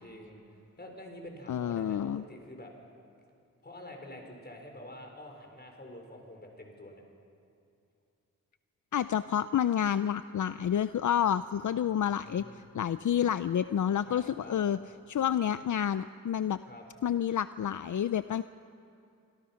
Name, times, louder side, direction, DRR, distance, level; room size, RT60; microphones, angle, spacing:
voice 1, 0.0-0.4 0.8-2.7 3.6-7.0 11.6-12.7 14.1-14.6 16.7-16.8 18.4-18.5, left 1 dB, 30° left, 2 dB, 4.5 m, -48 dB
voice 2, 1.5-2.2 8.9-14.8 15.1-16.6 17.0-18.4, left 9 dB, 70° left, 13 dB, 0.5 m, -29 dB
26.5 x 25.0 x 5.8 m, 2.6 s
wide cardioid pair, 95°, 31 cm